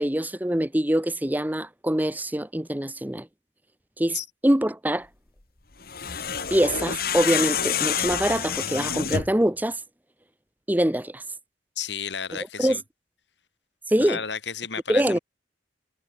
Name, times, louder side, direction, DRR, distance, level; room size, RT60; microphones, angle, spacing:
voice 1, 0.0-3.3 4.0-4.2 4.4-5.1 6.5-9.8 10.7-11.2 12.6-12.8 13.9-14.2 14.9-15.2, right 1 dB, 10° right, 0.9 m, -24 dB
sound 1, 5.8-9.4, left 7 dB, 55° left, 1.9 m, -27 dB
voice 2, 11.8-12.8 14.0-15.2, left 7 dB, 75° left, 2.4 m, -32 dB
head